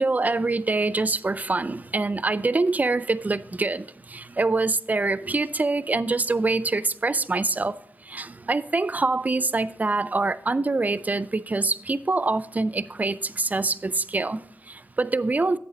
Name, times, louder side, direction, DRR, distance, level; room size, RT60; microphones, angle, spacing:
voice 1, 0.0-7.8 8.1-15.6, right 3 dB, 30° right, 0.3 m, -25 dB
8.6 x 5.6 x 5.1 m
wide cardioid pair, 85°, 5 cm